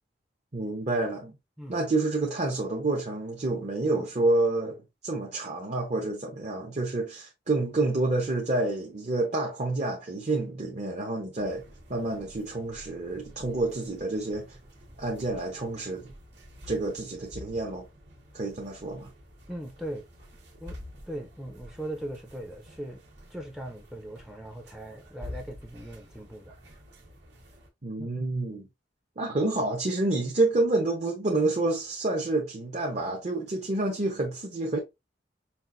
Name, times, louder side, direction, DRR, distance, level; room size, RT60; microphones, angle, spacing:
voice 1, 0.5-1.4 1.7-4.8 5.0-11.6 11.9-14.6 15.0-16.1 16.7-17.9 18.3-19.1 27.8-28.7 29.2-34.8, right 2 dB, 40° right, 0.9 m, -28 dB
sound 1, 11.4-27.7, left 1 dB, 65° right, 1.5 m, -49 dB
voice 2, 19.5-20.1 20.6-20.8 21.1-23.0 23.3-26.6 28.0-28.1, right 1 dB, ahead, 0.6 m, -39 dB
5.7 x 2.6 x 2.5 m
head